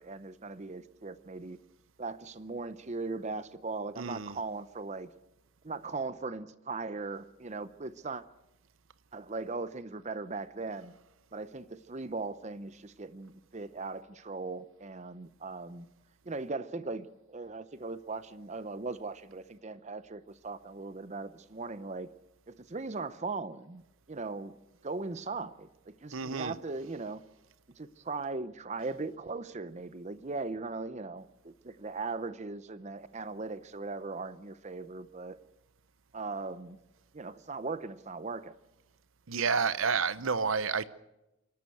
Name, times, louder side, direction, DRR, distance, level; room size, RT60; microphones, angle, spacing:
voice 1, 0.0-1.6 2.0-5.1 5.6-8.2 9.1-10.9 11.3-15.9 16.2-22.1 22.5-23.8 24.1-24.6 24.8-27.2 27.8-35.4 36.1-36.8 37.1-38.5, right 3 dB, 35° right, 0.7 m, -39 dB
voice 2, 4.0-4.4 26.1-26.5 39.3-40.9, right 5 dB, 70° right, 0.8 m, -30 dB
29.0 x 12.5 x 7.9 m
head